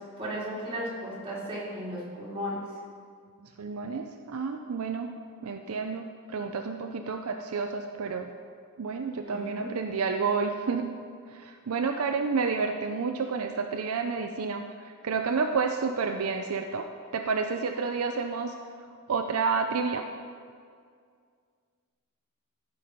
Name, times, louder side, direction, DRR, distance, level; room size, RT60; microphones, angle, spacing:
voice 1, 0.0-2.6 9.3-9.7, equal, 25° right, -7 dB, 3.1 m, -35 dB
voice 2, 3.4-5.1 5.4-8.3 8.8-10.9 11.3-18.5 19.1-20.1, right 5 dB, 70° right, 5 dB, 0.5 m, -30 dB
14.5 x 5.5 x 5.0 m, 2.1 s
head